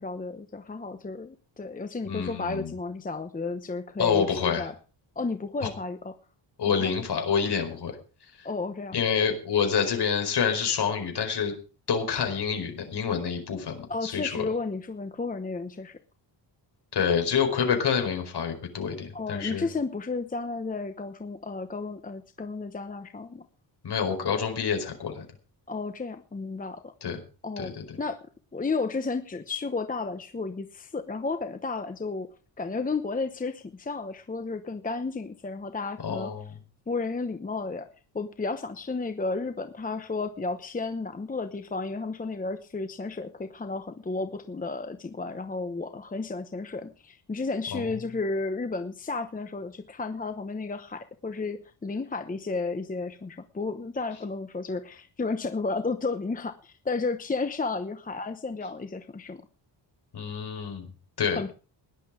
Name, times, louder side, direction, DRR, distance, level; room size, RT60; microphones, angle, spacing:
voice 1, 0.0-4.7 5.2-6.1 6.7-6.9 8.4-9.0 13.9-16.0 19.1-23.5 25.7-26.9 27.4-27.7 28.0-28.2 28.5-32.3 32.6-36.3 36.9-37.9 38.1-59.4 61.4-61.5, left 3 dB, 20° left, 9 dB, 0.9 m, -32 dB
voice 2, 2.0-2.7 4.0-4.7 5.6-5.7 6.6-7.9 8.9-11.5 11.9-14.4 16.9-19.7 23.8-25.2 27.0-27.2 27.6-27.8 36.0-36.5 47.7-47.8 60.1-60.9 61.2-61.5, left 7 dB, 55° left, 4 dB, 4.8 m, -27 dB
17.5 x 11.0 x 5.0 m, 0.36 s
wide cardioid pair, 140°, 46 cm